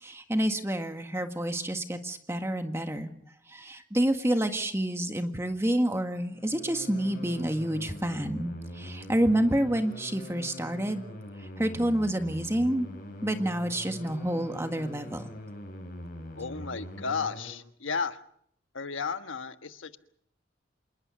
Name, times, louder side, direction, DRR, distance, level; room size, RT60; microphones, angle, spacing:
voice 1, 0.0-3.1 3.5-11.0 11.6-12.9 13.2-15.2, right 1 dB, 15° right, 6 dB, 1.8 m, -28 dB
sound 1, 6.1-17.5, left 1 dB, 45° left, 5.8 m, -43 dB
voice 2, 16.4-18.2 18.7-20.0, left 5 dB, 85° left, 9 dB, 1.4 m, -33 dB
27.5 x 20.5 x 6.5 m, 0.68 s
head